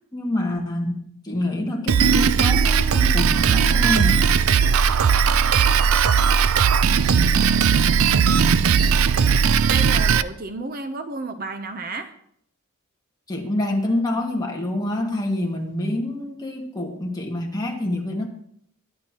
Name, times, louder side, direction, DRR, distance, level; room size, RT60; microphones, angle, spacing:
voice 1, 0.1-4.3 13.3-18.3, left 1 dB, 20° left, -1 dB, 2.0 m, -26 dB
Drum kit, 1.9-10.2, right 6 dB, 75° right, 0.5 m, -18 dB
voice 2, 9.7-12.1, right 3 dB, 40° right, 8 dB, 0.8 m, -32 dB
22.0 x 10.5 x 3.0 m, 0.68 s
head